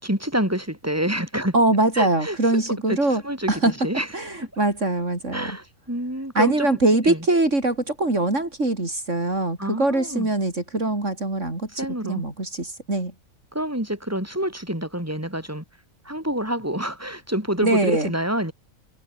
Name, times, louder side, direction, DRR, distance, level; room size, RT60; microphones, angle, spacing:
voice 1, 0.0-1.6 1.9-2.6 2.9-4.1 5.3-6.8 7.0-7.3 9.6-10.3 11.7-12.2 13.5-15.6 16.0-18.5, right 1 dB, 10° right, 7.1 m, -27 dB
voice 2, 1.5-3.2 3.5-3.7 4.1-5.6 6.4-11.7 12.0-13.1 17.6-18.1, right 2 dB, 60° right, 5.4 m, -22 dB
omnidirectional pair, 1.4 m